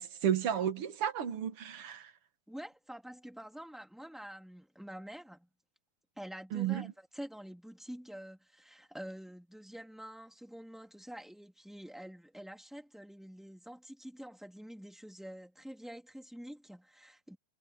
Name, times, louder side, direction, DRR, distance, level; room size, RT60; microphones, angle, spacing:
voice 1, 0.0-2.1 6.5-6.9, right 9 dB, 55° right, 1.9 m, -33 dB
voice 2, 2.5-5.5 6.2-17.4, equal, ahead, 2.0 m, -47 dB
omnidirectional pair, 3.5 m